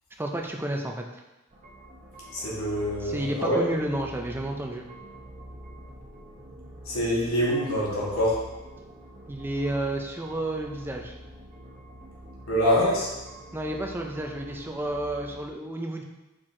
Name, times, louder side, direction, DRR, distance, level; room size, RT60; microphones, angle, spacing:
voice 1, 0.2-1.2 3.0-4.9 9.3-11.1 13.5-16.0, right 1 dB, 10° right, 2 dB, 0.5 m, -31 dB
sound 1, 1.5-15.4, right 1 dB, 30° right, 0.9 m, -46 dB
voice 2, 2.3-3.6 6.9-8.4 12.5-13.1, equal, 80° left, -6 dB, 2.2 m, -25 dB
6.1 x 4.5 x 3.7 m, 1.1 s
head